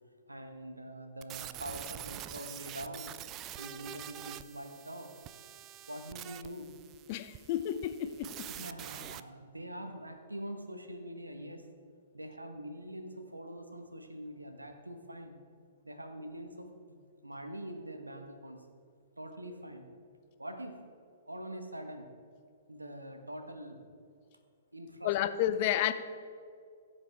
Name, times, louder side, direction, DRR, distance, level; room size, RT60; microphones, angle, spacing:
voice 1, 0.3-3.1 3.6-5.1 5.9-6.7 8.5-11.6 12.1-15.4 15.8-16.7 17.2-18.7 19.2-19.9 20.4-20.8 21.3-22.1 22.7-23.8 24.7-25.1, right 1 dB, 85° right, 1.1 m, -44 dB
sound 1, 1.2-9.2, right 12 dB, 25° right, 0.3 m, -46 dB
voice 2, 7.1-8.3 25.0-25.9, left 12 dB, 40° left, 0.5 m, -31 dB
16.0 x 7.3 x 3.4 m
figure-of-eight pair, 115°, 0 cm